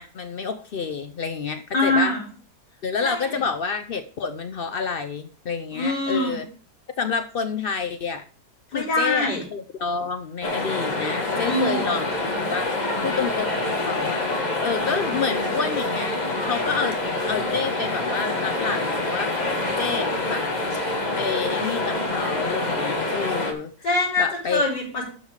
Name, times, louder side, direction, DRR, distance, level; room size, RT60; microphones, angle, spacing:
voice 1, 0.0-2.1 2.8-6.5 7.0-8.2 8.7-12.1 12.5-14.2 14.6-16.2 16.5-17.0 17.3-19.4 19.8-20.5 21.2-23.7 24.2-24.7, left 5 dB, 85° left, 8 dB, 0.5 m, -29 dB
voice 2, 1.7-2.2 3.0-3.4 5.7-6.3 8.7-9.4 11.4-11.9 23.8-25.0, left 2 dB, 70° left, -4 dB, 4.8 m, -24 dB
sound 1, 10.4-23.5, left 2 dB, 25° left, 1.5 m, -26 dB
12.0 x 5.6 x 4.8 m, 0.41 s
omnidirectional pair, 1.9 m